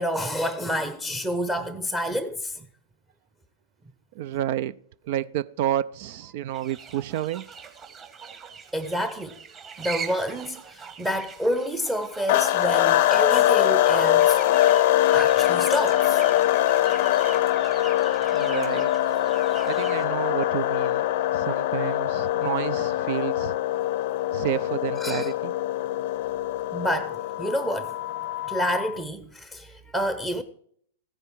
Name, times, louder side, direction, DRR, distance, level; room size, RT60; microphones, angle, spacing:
voice 1, 0.0-2.6 8.7-9.4 9.8-14.4 15.1-16.2 25.0-25.3 26.7-28.0 28.5-30.4, equal, 10° right, 0.9 m, -28 dB
voice 2, 4.1-4.7 5.0-7.4 18.3-18.9 19.7-21.0 21.3-23.5 24.3-25.5, right 12 dB, 50° right, 0.5 m, -30 dB
sound 1, 6.5-20.0, right 6 dB, 30° right, 1.7 m, -42 dB
sound 2, 12.3-29.0, left 13 dB, 55° left, 0.6 m, -23 dB
15.0 x 9.9 x 4.6 m
figure-of-eight pair, 100°, 0 cm